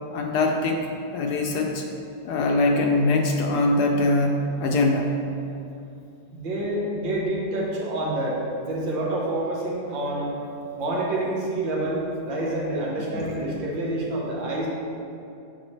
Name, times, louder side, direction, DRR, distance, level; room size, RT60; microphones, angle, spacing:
voice 1, 0.1-0.8 1.1-1.8 2.2-5.1 13.1-13.4, left 2 dB, 70° left, 2 dB, 1.1 m, -22 dB
voice 2, 6.3-8.4 8.6-10.3 10.8-14.7, right 1 dB, 90° right, -4 dB, 1.9 m, -27 dB
8.3 x 5.8 x 3.1 m, 2.7 s
omnidirectional pair, 2.0 m